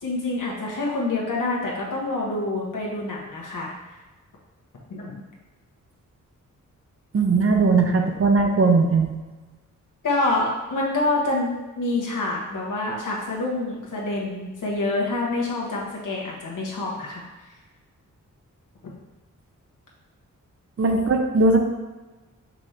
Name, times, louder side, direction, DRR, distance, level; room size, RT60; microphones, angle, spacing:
voice 1, 0.0-3.7 4.9-5.2 10.0-17.5, left 2 dB, 75° left, -3 dB, 1.2 m, -27 dB
voice 2, 7.1-9.1 20.8-21.6, right 3 dB, 45° right, 3 dB, 0.7 m, -19 dB
5.3 x 3.3 x 2.8 m, 1.2 s
wide cardioid pair, 85°, 32 cm